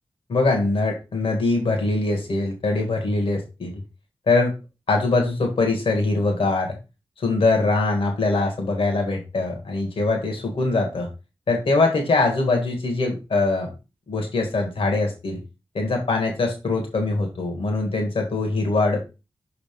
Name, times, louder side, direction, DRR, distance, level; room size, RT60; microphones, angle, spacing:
voice 1, 0.3-3.8 4.3-4.5 4.9-6.8 7.2-11.1 11.5-13.7 14.1-15.4 15.7-19.1, left 3 dB, 80° left, 2 dB, 1.8 m, -22 dB
5.8 x 3.9 x 5.3 m, 0.29 s
wide cardioid pair, 100°, 9 cm